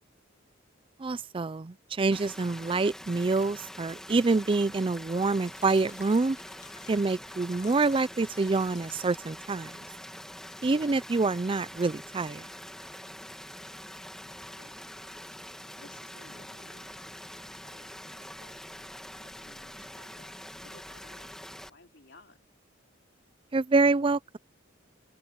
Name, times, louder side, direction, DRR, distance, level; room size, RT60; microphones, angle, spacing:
voice 1, 1.0-6.4 6.9-9.9 10.6-12.4 23.5-24.4, right 3 dB, 25° right, 0.4 m, -26 dB
sound 1, 2.1-21.7, equal, 5° left, 2.1 m, -45 dB
sound 2, 5.2-12.9, left 8 dB, 40° left, 1.9 m, -57 dB
voice 2, 15.7-20.4 20.6-22.5, left 2 dB, 65° left, 3.8 m, -58 dB
open air
head